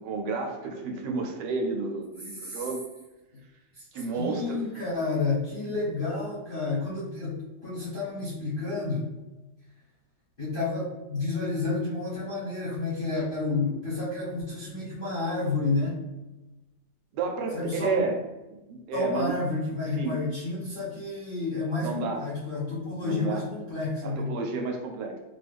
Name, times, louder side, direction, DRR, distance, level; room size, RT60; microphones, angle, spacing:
voice 1, 0.0-2.8 3.9-4.6 17.1-18.2 18.7-19.3 19.9-20.2 21.8-22.2 23.0-23.4 24.0-25.2, right 4 dB, 75° right, 2 dB, 1.1 m, -31 dB
voice 2, 4.2-9.1 10.4-16.0 17.5-18.0 18.9-24.3, left 3 dB, 40° left, -10 dB, 0.9 m, -30 dB
2.7 x 2.3 x 3.3 m, 1.1 s
omnidirectional pair, 2.0 m